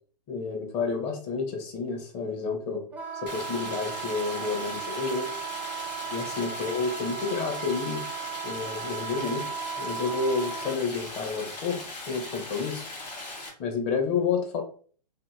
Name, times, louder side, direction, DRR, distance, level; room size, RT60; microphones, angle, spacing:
voice 1, 0.3-2.9 3.2-5.3 6.1-8.0 8.4-12.9 13.6-14.6, left 5 dB, 30° left, 3 dB, 0.7 m, -30 dB
Wind instrument woodwind instrument, 2.9-10.8, right 8 dB, 5° right, 0.3 m, -36 dB
Stream, 3.3-13.5, left 2 dB, 85° left, 1.1 m, -39 dB
2.7 x 2.6 x 2.3 m, 0.43 s
hypercardioid pair, 120°, 21 cm